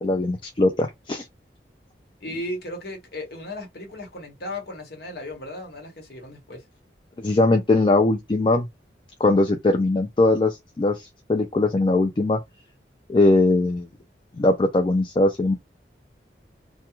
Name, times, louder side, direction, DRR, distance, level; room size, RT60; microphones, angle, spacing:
voice 1, 0.0-1.2 7.2-8.7 9.2-12.4 13.1-13.9 14.4-15.5, left 2 dB, 30° left, 0.3 m, -20 dB
voice 2, 2.2-6.6, left 1 dB, 60° left, 1.0 m, -35 dB
2.3 x 2.2 x 2.9 m
head